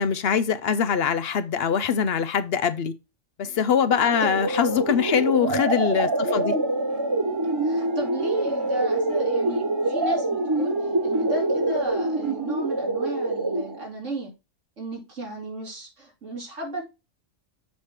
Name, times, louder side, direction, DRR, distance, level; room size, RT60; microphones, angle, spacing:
voice 1, 0.0-2.9 3.4-6.5, left 7 dB, 60° left, 0.8 m, -23 dB
sound 1, 3.4-13.4, right 5 dB, 45° right, 1.2 m, -44 dB
sound 2, 3.9-13.9, right 2 dB, 25° right, 0.7 m, -25 dB
voice 2, 6.2-6.6 7.6-10.8 11.0-14.3 14.8-16.8, right 1 dB, 90° right, 3.3 m, -34 dB
7.3 x 4.7 x 4.4 m
omnidirectional pair, 1.2 m